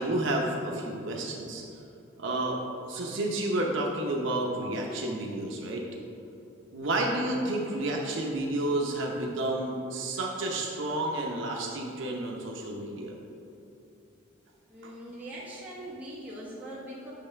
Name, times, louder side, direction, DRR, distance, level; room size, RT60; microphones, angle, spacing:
voice 1, 0.0-1.6 2.2-2.6 2.9-5.8 6.7-13.1 14.8-14.9, right 1 dB, 65° right, -1 dB, 0.7 m, -30 dB
voice 2, 14.7-17.1, right 1 dB, 5° right, -8 dB, 1.3 m, -41 dB
8.5 x 3.2 x 5.6 m, 2.7 s
head